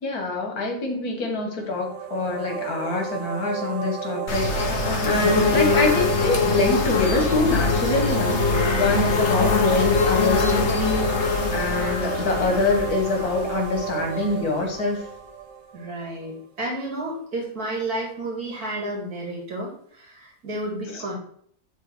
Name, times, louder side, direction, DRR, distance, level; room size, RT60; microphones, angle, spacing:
voice 1, 0.0-4.8 5.0-8.5 8.8-11.1 11.5-15.0 20.9-21.0, left 3 dB, 85° left, 1 dB, 2.1 m, -25 dB
sound 1, 1.6-16.3, right 6 dB, 65° right, 1.1 m, -32 dB
sound 2, 4.3-14.9, left 4 dB, 50° left, 1.3 m, -23 dB
voice 2, 5.1-5.4 8.9-9.1 15.7-21.1, right 1 dB, 85° right, -2 dB, 2.6 m, -31 dB
10.5 x 3.7 x 4.5 m, 0.62 s
omnidirectional pair, 1.6 m